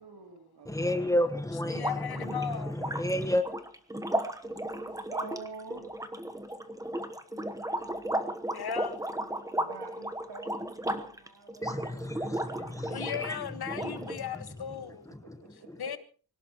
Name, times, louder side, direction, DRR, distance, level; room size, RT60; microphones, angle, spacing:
voice 1, 0.0-1.2 4.4-4.5 4.9-5.9 9.6-13.2 15.1-15.9, right 4 dB, 80° right, 3.1 m, -48 dB
voice 2, 0.7-3.4 11.6-13.5 14.3-14.4, left 1 dB, 10° left, 1.3 m, -31 dB
voice 3, 1.7-2.8 8.5-9.0 12.9-15.1 15.8-16.0, left 7 dB, 75° left, 1.6 m, -36 dB
sound 1, 1.7-13.3 13.7-14.5, right 1 dB, 10° right, 1.1 m, -35 dB
25.5 x 18.0 x 3.0 m
wide cardioid pair, 170°, 38 cm